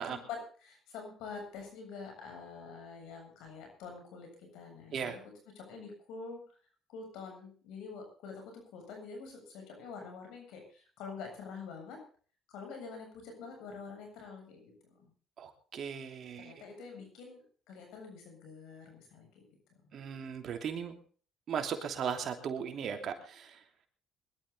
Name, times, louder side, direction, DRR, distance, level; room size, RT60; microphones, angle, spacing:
voice 1, 0.1-6.4 6.9-12.0 12.5-15.1 16.4-19.4, left 5 dB, 80° left, 3 dB, 7.4 m, -46 dB
voice 2, 15.4-16.5 19.9-21.0 21.5-23.5, right 7 dB, 60° right, 5 dB, 3.0 m, -37 dB
21.0 x 12.5 x 3.9 m, 0.41 s
supercardioid pair, 70°, 0 cm